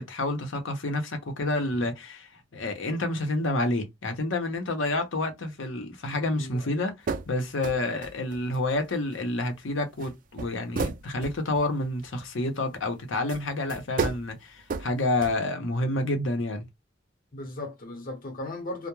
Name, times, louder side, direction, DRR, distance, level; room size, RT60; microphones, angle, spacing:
voice 1, 0.0-6.9 7.3-16.7, left 2 dB, 80° left, 0.7 m, -29 dB
voice 2, 6.3-6.7 7.7-7.8 17.3-18.9, left 2 dB, 50° left, 0.8 m, -37 dB
sound 1, 7.1-7.3 7.6-8.9 9.1-9.2 10.0-10.1 10.4-12.0 13.3-13.4 13.7-14.2 14.6-14.9 15.2-15.3, right 4 dB, 45° right, 0.3 m, -32 dB
2.2 x 2.1 x 3.0 m
head